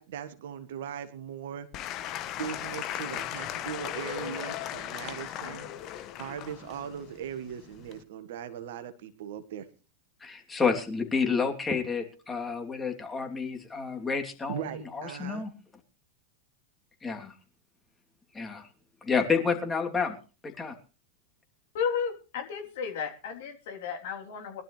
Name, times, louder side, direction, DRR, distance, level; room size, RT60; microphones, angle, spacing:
voice 1, 0.0-1.7 2.4-5.7 6.2-9.7 14.5-15.4, right 8 dB, 60° right, 11 dB, 1.5 m, -39 dB
Applause / Crowd, 1.7-8.0, left 12 dB, 40° left, 1.4 m, -37 dB
voice 2, 10.2-15.5 17.0-17.3 18.3-18.7 19.0-20.2 20.4-20.8, left 5 dB, 15° left, 3 dB, 3.1 m, -29 dB
voice 3, 21.7-24.6, left 6 dB, 60° left, 3 dB, 3.4 m, -33 dB
22.0 x 12.0 x 3.3 m, 0.35 s
figure-of-eight pair, 90°, 0 cm